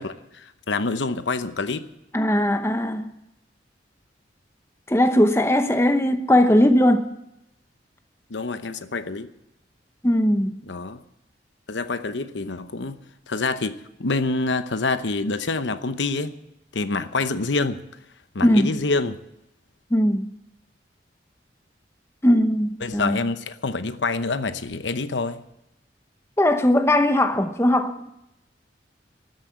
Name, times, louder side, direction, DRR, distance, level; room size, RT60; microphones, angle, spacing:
voice 1, 0.0-1.9 8.3-9.3 10.7-11.0 11.7-13.0 13.3-16.3 16.7-17.8 18.3-19.2 22.8-25.4, left 3 dB, 80° left, 0.9 m, -26 dB
voice 2, 2.1-3.1 4.9-7.1 10.0-10.6 18.4-18.7 19.9-20.3 22.2-23.2 26.4-28.1, left 1 dB, 15° left, 0.9 m, -19 dB
13.5 x 9.8 x 9.3 m
head